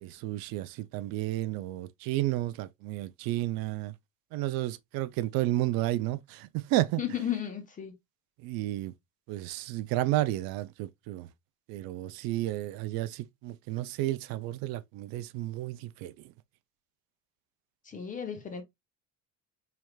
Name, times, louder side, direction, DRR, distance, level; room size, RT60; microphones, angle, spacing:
voice 1, 0.0-3.9 4.3-7.0 8.4-8.9 9.3-11.3 11.7-16.1, right 16 dB, 75° right, 0.5 m, -32 dB
voice 2, 7.0-7.9 17.8-18.6, left 9 dB, 20° left, 0.8 m, -34 dB
4.6 x 3.4 x 2.3 m
cardioid pair, 175°, 35 cm